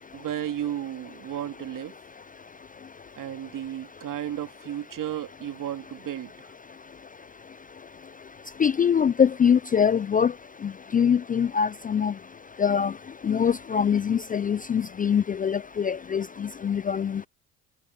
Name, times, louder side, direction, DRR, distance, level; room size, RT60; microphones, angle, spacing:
voice 1, 0.1-1.9 3.2-6.5, right 11 dB, 50° right, 2.7 m, -33 dB
voice 2, 8.6-10.3 10.9-12.1 12.6-12.9 13.2-17.3, left 7 dB, 20° left, 0.5 m, -23 dB
hypercardioid pair, 70°, 41 cm